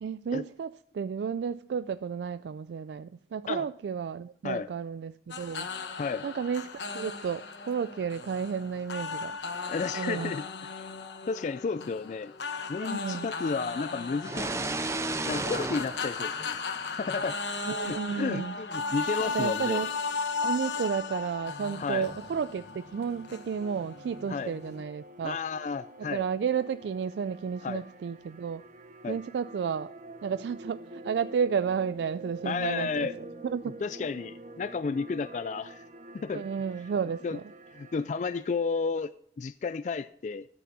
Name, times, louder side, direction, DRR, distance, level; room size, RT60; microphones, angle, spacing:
voice 1, 0.0-5.7 6.2-6.7 6.9-9.4 9.9-10.4 12.8-13.3 17.6-18.6 19.2-19.9 20.4-22.6 22.9-25.4 26.0-28.6 29.1-29.9 30.2-33.1 33.4-33.6 36.3-37.5, right 6 dB, 80° right, 0.3 m, -32 dB
sound 1, 5.3-24.8, left 4 dB, 80° left, 1.1 m, -36 dB
voice 2, 9.7-10.9 11.3-12.3 12.7-14.5 15.3-16.7 17.0-17.4 17.8-19.8 21.8-22.1 24.3-24.5 25.2-26.2 27.6-27.8 29.0-29.2 32.4-33.2 33.8-35.8 36.1-36.5 37.2-37.4 37.7-39.1 39.4-40.5, left 4 dB, 40° left, 0.3 m, -32 dB
sound 2, 14.2-17.0, right 2 dB, 15° right, 0.6 m, -33 dB
sound 3, 22.0-38.9, right 2 dB, 45° right, 1.0 m, -47 dB
12.5 x 8.5 x 4.0 m
head